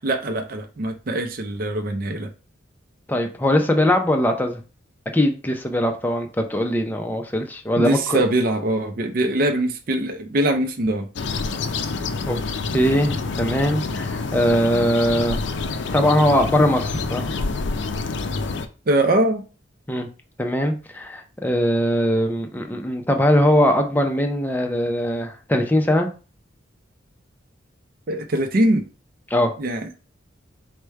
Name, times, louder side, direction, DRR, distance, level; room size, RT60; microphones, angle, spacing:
voice 1, 0.0-2.3 7.8-11.0 18.9-19.4 28.1-28.8 29.6-29.9, right 1 dB, 45° right, 0.4 m, -22 dB
voice 2, 3.1-4.6 5.1-8.2 12.3-12.4 12.7-15.4 15.9-17.3 19.9-20.1 20.4-26.1 29.3-29.5, equal, 10° left, 0.5 m, -21 dB
sound 1, 11.2-18.7, left 3 dB, 65° left, 0.4 m, -27 dB
4.8 x 2.1 x 4.5 m
head